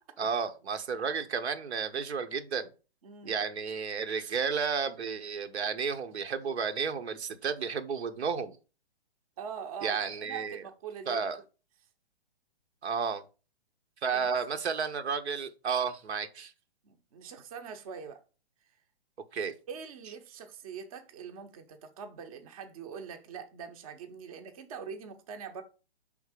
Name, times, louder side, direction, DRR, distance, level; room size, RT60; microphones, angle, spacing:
voice 1, 0.2-2.7 3.2-8.6 9.8-10.6 11.1-11.4 12.8-13.2 14.0-16.5 19.3-19.5, right 6 dB, 85° right, 1.0 m, -32 dB
voice 2, 3.0-3.4 9.4-10.0 10.2-11.2 14.1-14.3 16.8-18.2 19.7-25.6, right 6 dB, 35° right, 0.7 m, -43 dB
5.4 x 3.6 x 4.9 m
hypercardioid pair, 160°, 32 cm